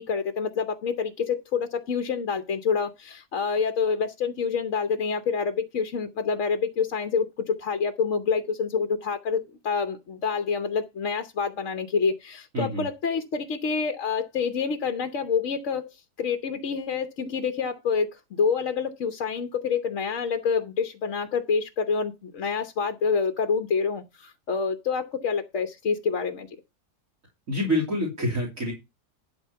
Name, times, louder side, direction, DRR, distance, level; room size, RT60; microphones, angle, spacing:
voice 1, 0.0-26.5, left 5 dB, 55° left, 1.1 m, -27 dB
voice 2, 12.5-12.9 27.5-28.7, equal, 50° right, 3.5 m, -26 dB
12.0 x 5.1 x 5.6 m
omnidirectional pair, 1.8 m